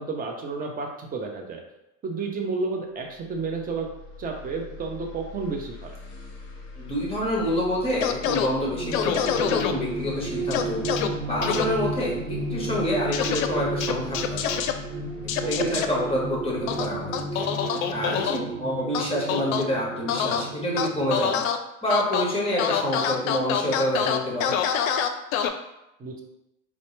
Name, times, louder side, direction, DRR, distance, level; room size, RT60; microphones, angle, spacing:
voice 1, 0.0-1.6 2.0-3.9 4.2-5.9 15.4-15.8 26.0-26.2, right 4 dB, 20° right, 2 dB, 0.6 m, -31 dB
sound 1, 3.0-18.4, left 3 dB, 50° left, 0.9 m, -43 dB
voice 2, 6.8-10.8 11.3-14.7 15.2-21.4 21.8-24.5, equal, 15° left, -4 dB, 1.3 m, -27 dB
sound 2, 8.0-8.5 8.9-9.7 10.5-11.1 11.4-11.6 13.1-13.5 13.8-14.7 15.3-15.9 16.7-18.4 18.9-19.6 20.1-20.4 20.8-21.6 21.9-22.2 22.6-25.5, left 9 dB, 70° left, 0.5 m, -25 dB
sound 3, 8.5-21.2, right 3 dB, 85° right, 0.6 m, -33 dB
4.2 x 2.1 x 3.2 m, 0.90 s
hypercardioid pair, 100°, 41 cm